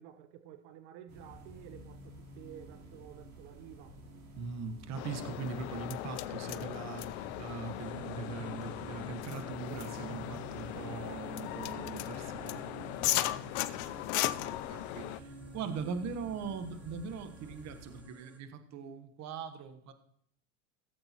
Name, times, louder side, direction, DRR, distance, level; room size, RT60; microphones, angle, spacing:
voice 1, 0.0-4.0 13.0-13.6, right 10 dB, 60° right, 0.8 m, -52 dB
sound 1, 1.1-18.0, right 2 dB, 90° right, 3.2 m, -50 dB
voice 2, 4.4-13.4 13.7-14.0 14.4-19.9, right 5 dB, 40° right, 1.2 m, -41 dB
sound 2, 5.0-15.2, left 16 dB, 50° left, 0.6 m, -37 dB
sound 3, 7.8-18.4, equal, 5° right, 1.1 m, -55 dB
16.5 x 7.7 x 3.0 m
hypercardioid pair, 105°, 42 cm